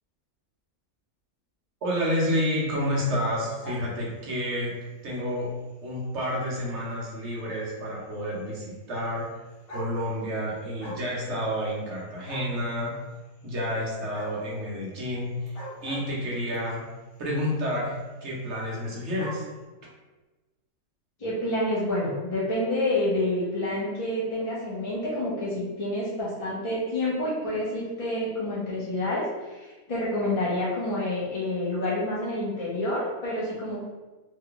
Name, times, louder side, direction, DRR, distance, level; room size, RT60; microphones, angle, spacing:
voice 1, 1.8-4.7 5.0-5.5 5.8-9.3 9.7-12.9 13.4-16.8 17.2-18.0 18.2-19.4, equal, 55° right, -4 dB, 1.1 m, -29 dB
sound 1, 3.4-4.6 5.2-5.4 6.2-6.3 6.5-6.6 6.9-7.0 8.2-8.3 9.2-9.3 9.5-10.3 10.6-11.1 11.4-12.0 12.3-12.6 14.1-14.5 15.4-16.6 17.5-17.7 18.0-18.1 18.3-18.4 18.6-19.5, equal, 65° left, 1.2 m, -41 dB
voice 2, 21.2-33.8, left 1 dB, 35° left, -7 dB, 0.5 m, -28 dB
3.2 x 2.2 x 3.8 m, 1.2 s
omnidirectional pair, 1.6 m